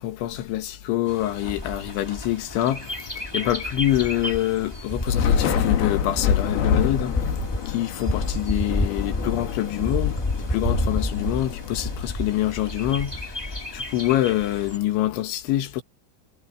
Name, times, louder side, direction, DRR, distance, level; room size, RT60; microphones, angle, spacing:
voice 1, 0.0-2.9 3.3-7.2 7.7-10.2 10.5-13.2 13.7-15.8, left 14 dB, 80° left, 3.9 m, -25 dB
Bird, 1.1-14.8, left 1 dB, 5° left, 2.1 m, -30 dB
Thunder / Rain, 5.0-12.6, left 8 dB, 60° left, 3.7 m, -27 dB
omnidirectional pair, 5.3 m